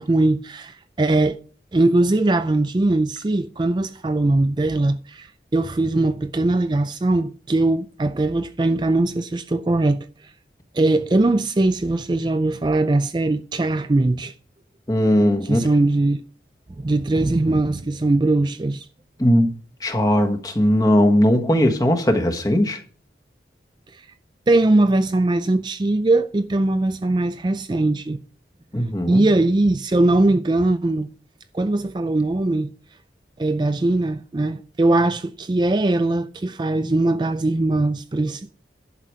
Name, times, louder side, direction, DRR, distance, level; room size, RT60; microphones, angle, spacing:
voice 1, 0.0-1.4 1.7-10.3 10.7-14.3 15.4-16.2 16.8-18.9 23.9-24.0 24.5-28.2 29.1-31.1 31.5-32.7 33.4-38.5, right 2 dB, 25° right, 0.4 m, -20 dB
voice 2, 14.9-15.7 19.2-19.5 19.8-22.8 28.7-29.2, equal, 20° left, 1.4 m, -18 dB
11.0 x 5.9 x 4.9 m
head